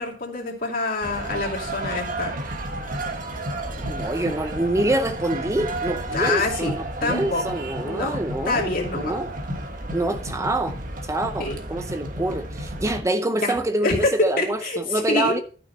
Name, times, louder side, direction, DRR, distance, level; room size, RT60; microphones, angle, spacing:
voice 1, 0.0-2.3 6.1-6.7 7.0-7.4 7.8-8.2 8.5-9.1 11.4-11.6 13.3-13.5 13.8-14.1 14.4-15.3, left 3 dB, 50° left, 2.5 m, -26 dB
sound 1, 1.0-13.0, right 1 dB, 45° right, 1.4 m, -32 dB
voice 2, 3.9-9.3 9.9-10.8 11.0-15.4, right 1 dB, 15° right, 0.6 m, -26 dB
12.5 x 6.2 x 4.1 m
head